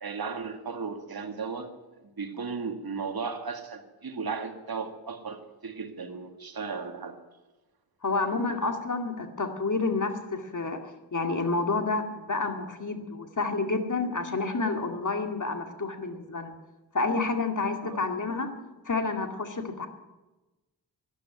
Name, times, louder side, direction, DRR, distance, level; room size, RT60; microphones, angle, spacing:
voice 1, 0.0-1.7 2.2-7.2 17.8-18.0, right 5 dB, 60° right, 5 dB, 2.1 m, -35 dB
voice 2, 8.0-10.8 11.1-16.5 16.9-18.5 18.8-19.9, left 3 dB, 45° left, 5 dB, 2.3 m, -29 dB
13.5 x 11.5 x 9.5 m, 1.1 s
cardioid pair, 70°, 41 cm